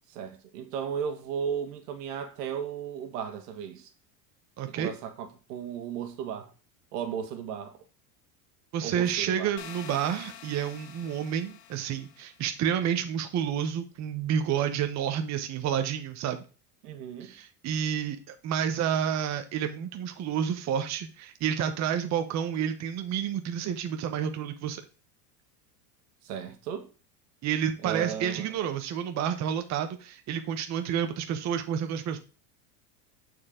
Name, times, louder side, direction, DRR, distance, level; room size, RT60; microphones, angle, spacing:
voice 1, 0.1-3.9 4.7-6.5 6.9-7.8 8.8-9.5 16.8-17.3 26.2-26.9 27.8-28.5, right 8 dB, 80° right, 1.6 m, -35 dB
voice 2, 4.6-4.9 8.7-16.4 17.2-24.8 27.4-32.2, right 8 dB, 35° right, 0.9 m, -30 dB
sound 1, 9.6-12.4, left 10 dB, 55° left, 1.1 m, -47 dB
8.5 x 4.8 x 3.7 m
supercardioid pair, 120°, 47 cm